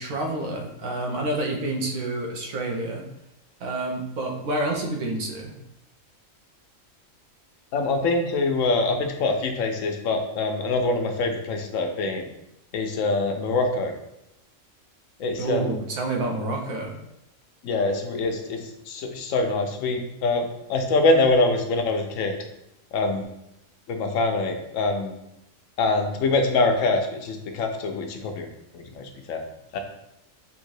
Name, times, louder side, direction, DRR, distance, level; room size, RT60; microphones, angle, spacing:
voice 1, 0.0-3.0 3.6-5.5 15.4-16.9, right 2 dB, 85° right, 0 dB, 1.2 m, -28 dB
voice 2, 7.7-12.2 12.7-13.9 15.2-15.8 17.6-20.4 20.7-22.4 22.9-23.3 23.9-25.1 25.8-28.5 28.7-29.4 29.7-29.8, left 3 dB, 80° left, 4 dB, 1.0 m, -24 dB
3.7 x 2.7 x 4.6 m, 0.85 s
omnidirectional pair, 1.4 m